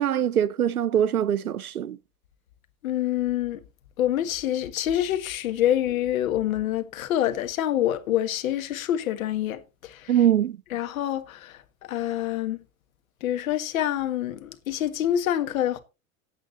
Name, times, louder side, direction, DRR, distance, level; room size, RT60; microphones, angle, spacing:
voice 1, 0.0-2.0 10.1-10.6, right 10 dB, 85° right, 0.7 m, -23 dB
voice 2, 2.8-3.6 4.0-10.1 10.7-11.6 11.9-12.6 13.2-15.8, left 11 dB, 65° left, 1.7 m, -26 dB
15.0 x 9.0 x 2.9 m
figure-of-eight pair, 80°, 44 cm